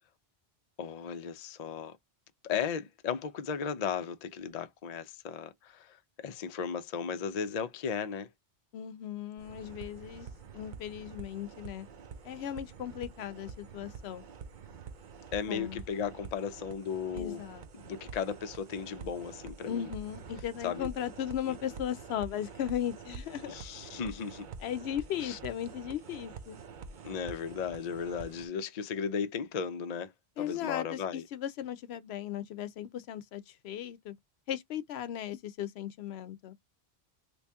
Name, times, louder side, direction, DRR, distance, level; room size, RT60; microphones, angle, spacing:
voice 1, 0.8-2.0 2.4-8.3 15.3-17.4 17.7-19.9 20.6-20.9 21.5-21.6 23.5-24.5 25.2-25.4 27.0-31.2, left 7 dB, 50° left, 0.5 m, -36 dB
voice 2, 8.7-10.3 10.5-11.9 12.2-14.2 15.5-15.8 17.1-17.6 19.7-23.6 24.6-26.6 30.4-34.1 34.5-36.5, left 10 dB, 85° left, 0.8 m, -37 dB
sound 1, 9.4-28.5, right 5 dB, 55° right, 0.7 m, -47 dB
3.0 x 2.7 x 3.4 m
omnidirectional pair, 1.1 m